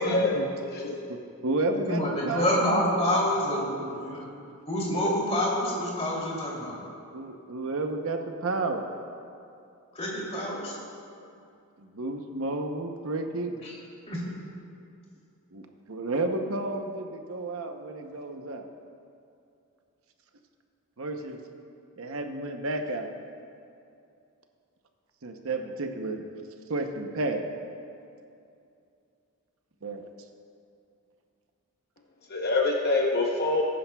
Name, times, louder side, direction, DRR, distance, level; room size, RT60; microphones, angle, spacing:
voice 1, 0.0-0.4 0.6-0.9 32.3-33.6, left 2 dB, 45° left, -1 dB, 0.9 m, -25 dB
voice 2, 1.1-2.5 3.7-4.0 4.9-5.1 7.1-8.9 11.8-13.5 15.5-18.7 21.0-21.4 22.0-23.1 25.2-26.2 26.7-27.5 29.8-30.0, right 2 dB, 65° right, 5 dB, 0.8 m, -31 dB
voice 3, 1.7-4.3 4.7-6.8 9.9-10.7 13.6-13.8 14.1-14.2, left 1 dB, 30° left, -5 dB, 2.8 m, -27 dB
21.0 x 10.0 x 2.3 m, 2.5 s
head